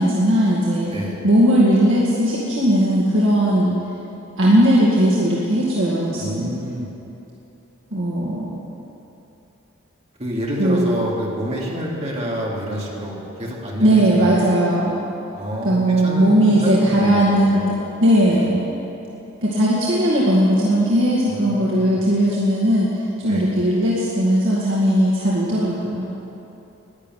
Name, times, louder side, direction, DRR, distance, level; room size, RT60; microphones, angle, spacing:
voice 1, 0.0-0.9 1.2-3.7 4.4-6.5 7.9-8.5 10.6-10.9 13.8-14.9 15.6-17.8 18.0-18.7 19.4-26.1, right 1 dB, 65° right, -6 dB, 2.1 m, -18 dB
voice 2, 6.2-6.9 10.2-14.4 15.3-17.7 18.3-18.5 21.3-22.0 23.2-23.5, equal, 30° right, -3 dB, 2.6 m, -28 dB
12.0 x 10.5 x 9.2 m, 3.0 s
head